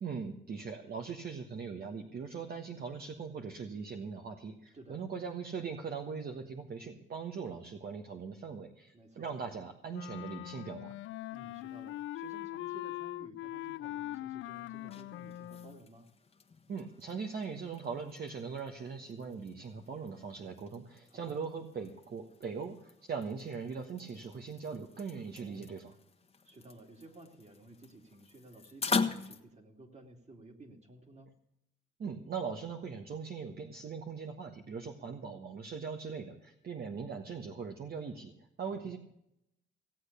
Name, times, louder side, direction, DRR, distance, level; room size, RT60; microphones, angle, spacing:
voice 1, 0.0-10.9 16.7-25.9 32.0-38.3 38.6-39.0, right 5 dB, 50° right, 4 dB, 1.4 m, -40 dB
voice 2, 4.7-5.1 8.9-9.3 11.3-16.1 21.1-21.4 25.3-25.7 26.4-31.3 38.6-39.0, right 2 dB, 35° right, 4 dB, 2.7 m, -54 dB
Wind instrument woodwind instrument, 9.9-15.8, left 15 dB, 75° left, 0.4 m, -41 dB
sound 1, 14.5-29.4, left 5 dB, 30° left, 1.4 m, -42 dB
17.0 x 8.3 x 6.8 m, 0.80 s
cardioid pair, 90°, 20 cm